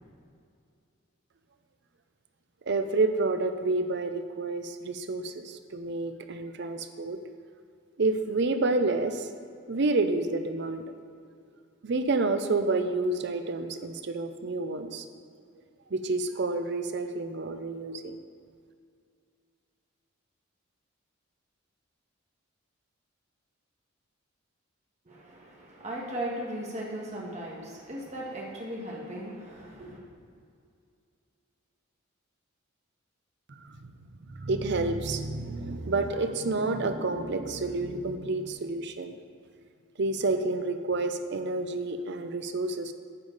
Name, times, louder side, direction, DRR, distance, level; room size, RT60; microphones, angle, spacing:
voice 1, 2.7-7.2 8.0-9.3 9.7-10.8 11.8-15.0 15.9-18.2 33.5-33.9 34.3-39.2 40.0-42.9, right 3 dB, 55° right, 8 dB, 0.6 m, -29 dB
voice 2, 25.0-30.0, right 1 dB, 35° right, -3 dB, 1.7 m, -37 dB
9.8 x 7.2 x 4.0 m, 2.3 s
head